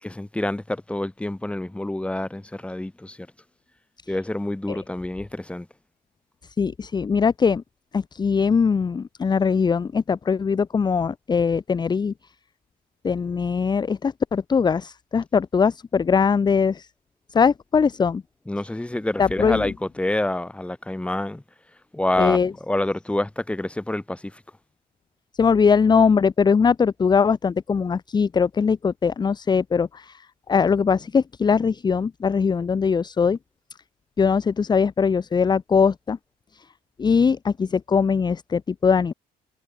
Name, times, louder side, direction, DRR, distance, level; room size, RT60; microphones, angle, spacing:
voice 1, 0.0-3.2 4.1-5.7 18.5-21.4 21.9-24.4, left 1 dB, 5° left, 2.0 m, -27 dB
voice 2, 6.6-7.6 7.9-12.1 13.0-16.9 17.3-18.2 19.2-19.7 22.2-22.5 25.4-30.1 30.5-33.4 34.2-36.2 37.0-39.1, left 5 dB, 25° left, 0.8 m, -21 dB
cardioid pair, 110°, 17 cm